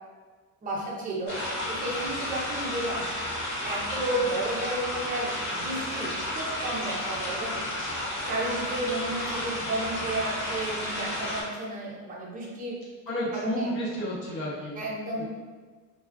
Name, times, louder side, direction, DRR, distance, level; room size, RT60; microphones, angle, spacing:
voice 1, 0.6-1.4 1.7-3.1 3.6-7.6 8.3-12.8 13.3-13.8 14.8-15.2, right 1 dB, 25° right, -4 dB, 0.5 m, -32 dB
sound 1, 1.3-11.4, left 1 dB, 40° left, 1.4 m, -32 dB
voice 2, 13.1-14.8 15.2-15.3, equal, 65° left, -6 dB, 0.8 m, -31 dB
2.3 x 2.2 x 3.4 m, 1.4 s
cardioid pair, 180°, 36 cm